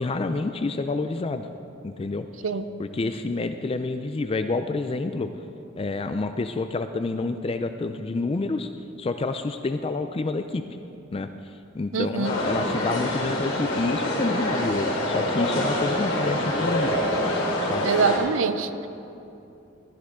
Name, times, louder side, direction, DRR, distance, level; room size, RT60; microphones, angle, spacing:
voice 1, 0.0-1.5 1.8-2.3 2.8-5.3 5.8-8.7 9.0-10.6 11.1-17.0 17.6-17.9, left 3 dB, 30° left, 8 dB, 0.4 m, -28 dB
voice 2, 11.9-12.3 17.8-18.9, right 5 dB, 80° right, 11 dB, 0.6 m, -24 dB
sound 1, 12.2-18.2, left 1 dB, 80° left, 3.6 m, -26 dB
15.5 x 13.0 x 3.7 m, 2.7 s
head